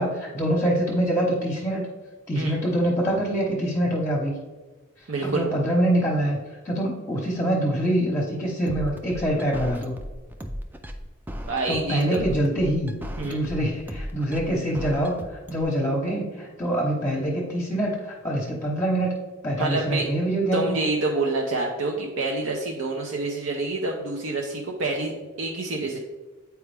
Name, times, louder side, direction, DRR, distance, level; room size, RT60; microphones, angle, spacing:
voice 1, 0.0-1.9 2.3-4.3 5.2-6.4 6.6-10.0 11.7-12.9 13.2-19.2 19.4-20.8, right 1 dB, 10° left, -2 dB, 0.9 m, -25 dB
voice 2, 5.1-5.5 11.5-12.3 13.2-13.4 19.6-20.1 20.5-26.0, right 2 dB, 70° right, 0 dB, 0.7 m, -27 dB
sound 1, 8.7-15.6, equal, 10° right, 0.4 m, -35 dB
8.5 x 4.6 x 3.4 m, 1.3 s
head